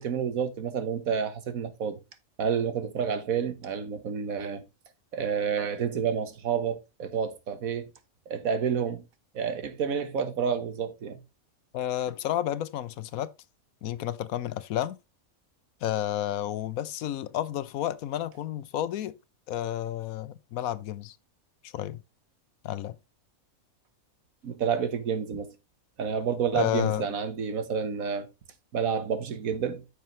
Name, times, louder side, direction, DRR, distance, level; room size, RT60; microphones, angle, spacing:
voice 1, 0.0-2.0 2.4-4.6 5.1-7.9 8.3-9.0 9.3-11.2 24.4-25.5 26.0-28.3 28.7-29.8, right 7 dB, 75° right, 1.6 m, -29 dB
voice 2, 11.7-13.3 13.8-15.0 15.8-19.2 19.5-21.2 21.6-22.0 22.6-23.0 26.5-27.1, left 12 dB, 80° left, 1.1 m, -31 dB
9.4 x 6.6 x 3.1 m
omnidirectional pair, 1.5 m